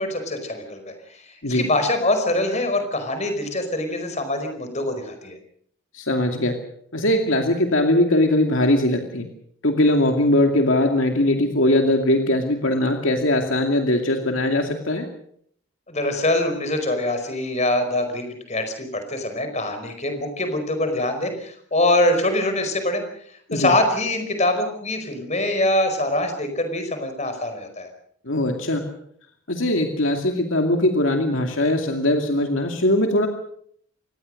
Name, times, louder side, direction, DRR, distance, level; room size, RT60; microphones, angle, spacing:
voice 1, 0.0-5.4 15.9-23.0 23.5-27.9, left 1 dB, 30° left, 7 dB, 4.9 m, -24 dB
voice 2, 5.9-6.6 6.9-9.3 9.6-15.1 23.5-23.7 28.2-28.9 29.5-33.3, left 1 dB, 60° left, 4 dB, 2.4 m, -20 dB
26.0 x 19.5 x 6.5 m, 0.66 s
head